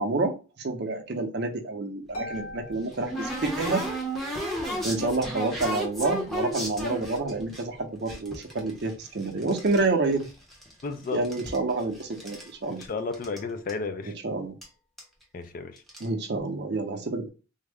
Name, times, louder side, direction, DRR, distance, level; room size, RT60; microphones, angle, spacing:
voice 1, 0.0-3.9 4.8-10.3 11.1-12.8 14.0-14.5 16.0-17.3, right 3 dB, 50° right, 0.6 m, -28 dB
Harp, 2.1-4.0, left 1 dB, 90° left, 1.1 m, -41 dB
sound 1, 2.1-7.6 8.1-9.8 10.1-10.9 11.1-12.5 12.8-12.9 13.1-13.4 13.7-13.8 14.6-14.7 15.0-15.2 15.8-16.0, equal, ahead, 0.6 m, -33 dB
voice 2, 10.8-11.2 12.7-14.1 15.3-15.8, left 4 dB, 40° left, 0.3 m, -33 dB
3.5 x 2.0 x 3.4 m
head